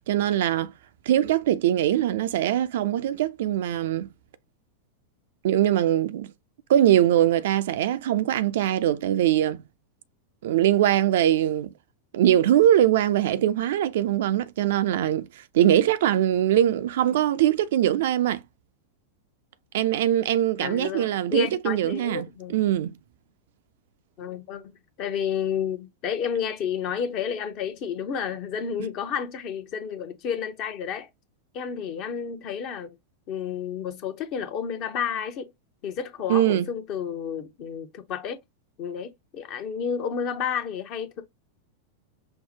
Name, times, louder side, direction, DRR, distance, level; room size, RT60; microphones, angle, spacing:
voice 1, 0.1-0.7 1.1-4.1 5.4-6.3 6.7-9.6 10.4-11.7 12.1-18.4 19.7-22.3 22.5-22.9 36.3-36.7, right 11 dB, 55° right, 0.4 m, -22 dB
voice 2, 20.6-22.7 24.2-24.6 25.0-31.1 31.5-33.0 33.3-35.5 35.8-38.4 38.8-41.2, left 7 dB, 40° left, 0.8 m, -31 dB
5.7 x 2.1 x 2.7 m
figure-of-eight pair, 90°, 0 cm